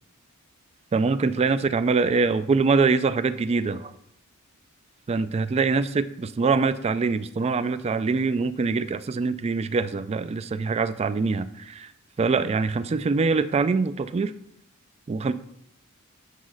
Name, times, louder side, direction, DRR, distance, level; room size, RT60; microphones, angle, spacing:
voice 1, 0.9-3.9 5.1-11.9 12.2-14.3 15.1-15.3, right 4 dB, 30° right, 12 dB, 0.3 m, -24 dB
8.4 x 4.0 x 6.2 m, 0.79 s
head